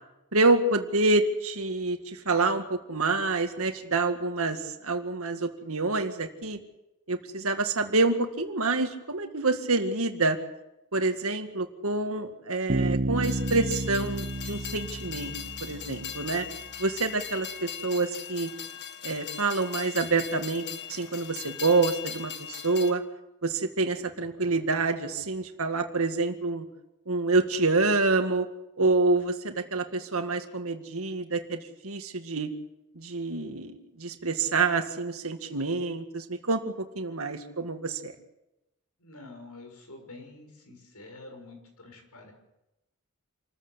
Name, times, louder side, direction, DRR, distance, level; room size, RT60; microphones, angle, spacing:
voice 1, 0.3-6.6 7.1-10.4 10.9-16.5 16.8-18.5 19.0-23.0 23.4-26.7 27.1-28.5 28.8-32.5 33.0-38.1, right 3 dB, 65° right, 6 dB, 2.1 m, -27 dB
Bass guitar, 12.7-16.4, right 2 dB, 40° right, 1.0 m, -31 dB
Train, 13.2-22.9, left 8 dB, 50° left, 1.7 m, -39 dB
voice 2, 39.0-42.3, left 2 dB, 85° left, 4 dB, 6.2 m, -47 dB
27.5 x 14.5 x 8.1 m, 0.92 s
head